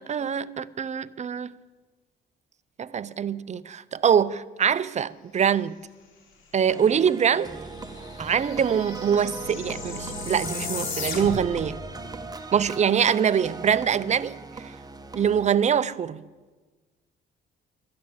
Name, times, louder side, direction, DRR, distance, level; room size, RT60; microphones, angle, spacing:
voice 1, 0.0-1.5 2.8-5.8 6.5-7.5 8.2-11.8 12.5-14.7 15.1-16.2, right 8 dB, 35° right, 0.5 m, -24 dB
sound 1, 6.7-15.4, right 3 dB, 20° right, 1.1 m, -39 dB
sound 2, 7.1-7.2 7.4-11.6, left 5 dB, 85° left, 2.9 m, -36 dB
sound 3, 7.9-12.7, left 1 dB, 50° left, 2.3 m, -42 dB
12.0 x 10.5 x 7.4 m
cardioid pair, 90°, 20 cm